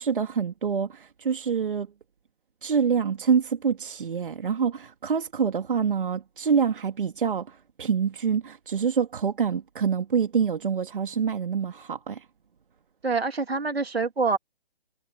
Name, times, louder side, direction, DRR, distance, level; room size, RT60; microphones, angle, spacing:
voice 1, 0.0-1.9 2.6-12.2, right 6 dB, 55° right, 2.5 m, -26 dB
voice 2, 13.0-14.4, right 4 dB, 70° right, 3.1 m, -26 dB
figure-of-eight pair, 140°, 31 cm